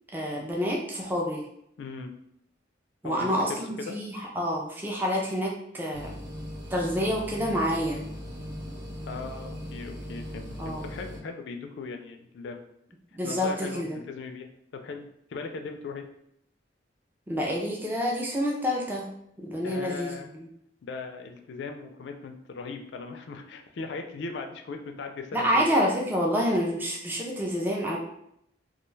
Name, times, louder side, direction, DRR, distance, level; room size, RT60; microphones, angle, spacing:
voice 1, 0.1-1.4 3.0-6.1 6.7-8.0 10.6-10.8 13.1-14.0 17.3-19.1 19.4-20.5 25.3-28.0, equal, 10° right, -2 dB, 0.3 m, -28 dB
voice 2, 1.8-2.1 3.0-3.4 3.8-4.0 9.1-12.6 13.2-15.0 15.3-16.1 19.6-20.3 20.8-25.7, left 4 dB, 70° left, 4 dB, 0.3 m, -38 dB
sound 1, 5.9-11.2, equal, 70° right, 1.1 m, -39 dB
2.3 x 2.2 x 3.1 m, 0.73 s
head